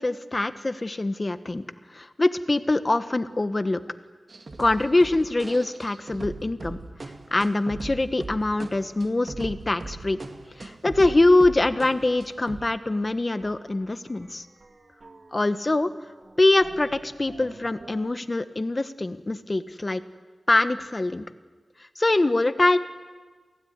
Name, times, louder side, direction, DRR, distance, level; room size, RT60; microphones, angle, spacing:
voice 1, 0.0-1.6 1.9-3.8 4.6-6.8 7.3-10.2 10.6-14.5 15.3-15.9 16.4-20.0 20.5-21.2 22.0-22.8, left 2 dB, 30° left, 10 dB, 1.3 m, -23 dB
sound 1, 4.3-12.8 13.0-13.1 13.4-15.4 15.7-18.2, right 3 dB, 45° right, 2.2 m, -41 dB
28.5 x 16.5 x 9.7 m, 1.4 s
wide cardioid pair, 90°, 0 cm